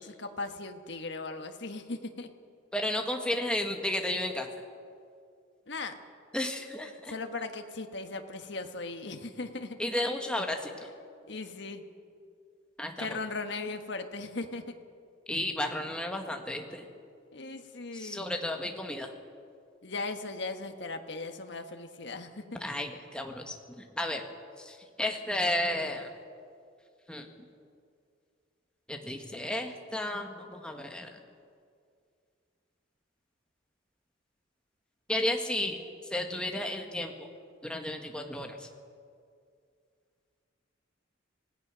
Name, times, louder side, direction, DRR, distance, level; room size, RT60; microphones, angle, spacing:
voice 1, 0.0-2.3 5.7-6.0 7.0-9.8 11.3-11.8 13.0-14.6 17.3-18.2 19.8-22.6, left 3 dB, 60° left, 6 dB, 1.5 m, -38 dB
voice 2, 2.7-4.5 6.3-7.1 9.8-10.7 12.8-13.2 15.3-16.8 17.9-19.1 22.6-24.2 24.6-26.1 27.1-27.3 28.9-31.1 35.1-35.8 36.1-37.3 37.6-38.7, left 1 dB, 5° left, 3 dB, 1.5 m, -33 dB
25.5 x 17.0 x 6.2 m, 2.3 s
head